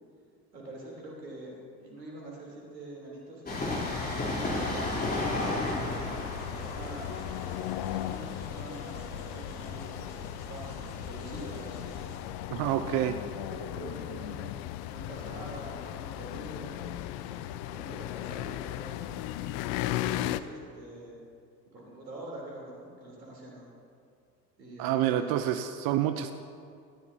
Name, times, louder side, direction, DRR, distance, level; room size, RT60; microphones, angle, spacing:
voice 1, 0.5-6.3 6.5-7.1 7.9-11.9 12.7-12.9 13.5-19.2 19.5-21.2 21.7-23.7 24.6-25.3, right 2 dB, 85° right, -3 dB, 3.7 m, -45 dB
Train, 3.4-10.9 11.1-11.2, left 2 dB, 20° left, 3.8 m, -34 dB
sound 1, 3.5-12.2, left 1 dB, 85° left, 2.4 m, -46 dB
sound 2, 3.5-20.4, left 13 dB, 50° left, 0.7 m, -37 dB
voice 2, 12.5-13.2 24.8-26.3, right 11 dB, 45° right, 9 dB, 0.7 m, -28 dB
18.5 x 14.5 x 2.9 m, 2.3 s
figure-of-eight pair, 70°, 49 cm